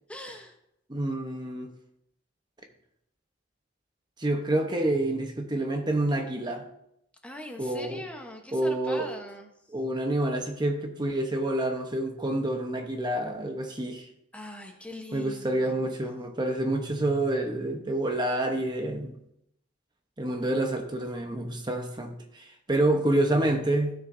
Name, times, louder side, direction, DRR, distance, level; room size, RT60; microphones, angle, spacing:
voice 1, 0.1-0.5 7.2-9.5 14.3-15.9, left 1 dB, 5° left, 2 dB, 1.0 m, -41 dB
voice 2, 0.9-1.7 4.2-6.6 7.6-8.0 8.5-9.1 9.7-14.1 15.1-19.2 20.2-23.9, right 1 dB, 25° right, 4 dB, 0.9 m, -28 dB
15.5 x 6.5 x 2.6 m, 0.78 s
head